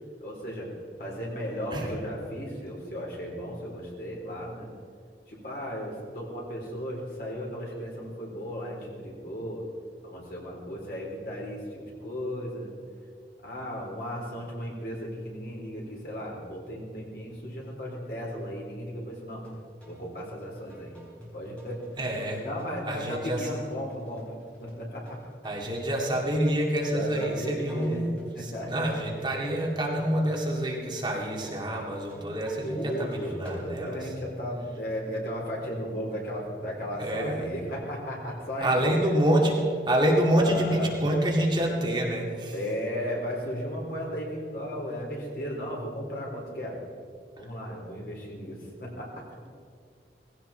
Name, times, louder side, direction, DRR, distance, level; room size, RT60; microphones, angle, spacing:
voice 1, 0.2-0.7 1.0-4.7 5.3-9.6 10.0-12.7 13.4-19.4 19.9-20.9 21.3-21.8 22.3-24.3 24.6-25.2 26.9-28.0 28.3-28.9 32.6-39.2 40.3-40.9 42.5-46.8 47.4-49.2, equal, 55° left, -2 dB, 4.0 m, -35 dB
sound 1, 19.4-33.6, equal, 5° left, 4.3 m, -49 dB
voice 2, 22.0-22.4 22.9-23.5 25.4-28.1 28.4-34.1 37.0-37.5 38.6-42.5, right 1 dB, 25° right, -2 dB, 2.1 m, -27 dB
18.0 x 16.0 x 4.4 m, 2.3 s
head